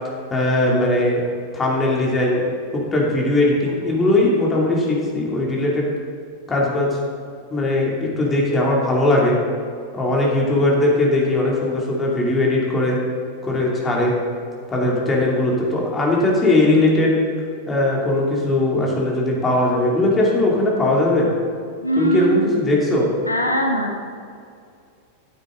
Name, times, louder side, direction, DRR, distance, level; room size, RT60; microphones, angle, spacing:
voice 1, 0.3-1.3 1.5-2.4 2.7-5.9 6.5-6.9 7.5-9.4 9.9-13.0 13.4-14.1 14.7-17.1 17.7-21.3 22.0-23.1, left 2 dB, 15° left, -3 dB, 2.7 m, -19 dB
voice 2, 21.8-22.4 23.3-23.9, right 1 dB, 85° left, 2 dB, 1.0 m, -21 dB
12.5 x 9.3 x 3.9 m, 2.4 s
figure-of-eight pair, 90°, 0 cm